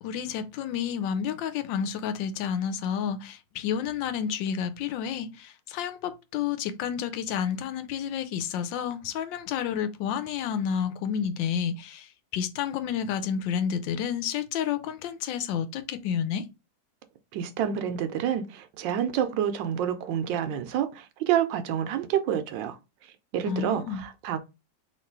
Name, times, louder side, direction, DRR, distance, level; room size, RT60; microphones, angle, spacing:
voice 1, 0.0-16.4 23.4-24.0, left 8 dB, 80° left, 1.3 m, -30 dB
voice 2, 17.3-22.8 23.3-24.4, right 9 dB, 80° right, 1.3 m, -28 dB
3.2 x 3.0 x 4.4 m
omnidirectional pair, 2.0 m